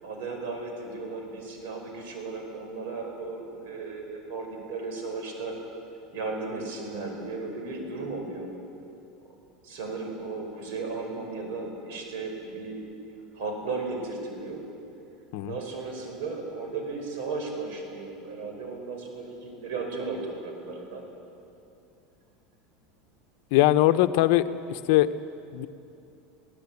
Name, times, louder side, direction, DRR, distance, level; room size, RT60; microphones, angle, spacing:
voice 1, 0.0-5.5 6.1-8.5 9.6-12.8 13.3-14.6 15.4-21.0, right 3 dB, 70° right, 3 dB, 5.0 m, -35 dB
voice 2, 23.5-24.4 24.7-25.1 25.5-25.7, left 15 dB, 60° left, 11 dB, 0.9 m, -21 dB
24.0 x 17.5 x 8.5 m, 2.7 s
supercardioid pair, 160°, 0 cm